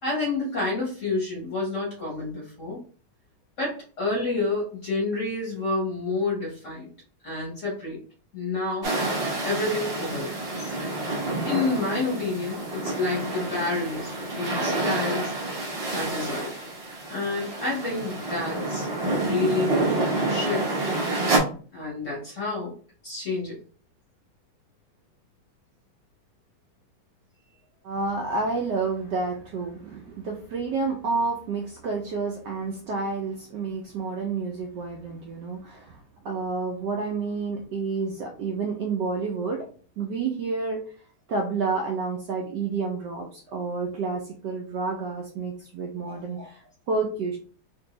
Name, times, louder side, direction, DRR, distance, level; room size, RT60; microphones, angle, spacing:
voice 1, 0.0-2.8 3.6-6.9 7.2-8.0 8.3-8.9 9.4-10.8 11.4-15.3 15.9-16.7 17.1-20.7 21.7-22.7 23.0-23.6, left 3 dB, 45° left, -4 dB, 1.1 m, -29 dB
sound 1, 8.8-21.4, right 2 dB, 55° right, 0.6 m, -28 dB
voice 2, 27.8-39.7 40.0-40.8 41.3-47.4, right 4 dB, 75° right, 1 dB, 1.0 m, -29 dB
3.4 x 2.7 x 2.9 m, 0.41 s
omnidirectional pair, 2.3 m